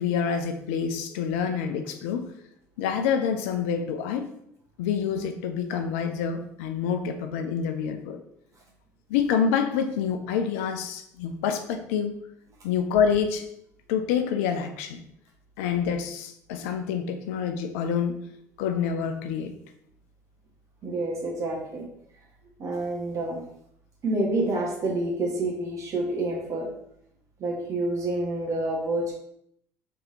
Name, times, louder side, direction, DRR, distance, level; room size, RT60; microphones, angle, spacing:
voice 1, 0.0-2.3 2.8-4.3 4.8-8.2 9.1-12.1 12.6-13.5 13.9-15.0 15.6-18.2 18.6-19.6, left 7 dB, 65° left, 7 dB, 0.4 m, -27 dB
voice 2, 20.8-21.9 22.6-23.4 24.0-26.7 27.4-29.1, right 2 dB, 40° right, -2 dB, 1.3 m, -28 dB
3.4 x 3.3 x 2.7 m, 0.72 s
figure-of-eight pair, 60°, 8 cm